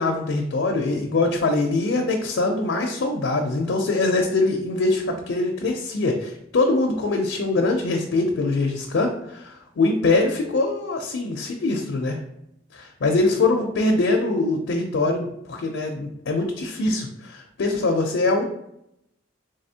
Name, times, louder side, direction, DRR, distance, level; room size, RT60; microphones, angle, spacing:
voice 1, 0.0-12.2 12.7-18.4, left 2 dB, 75° left, 1 dB, 0.5 m, -23 dB
3.7 x 3.4 x 2.7 m, 0.79 s
head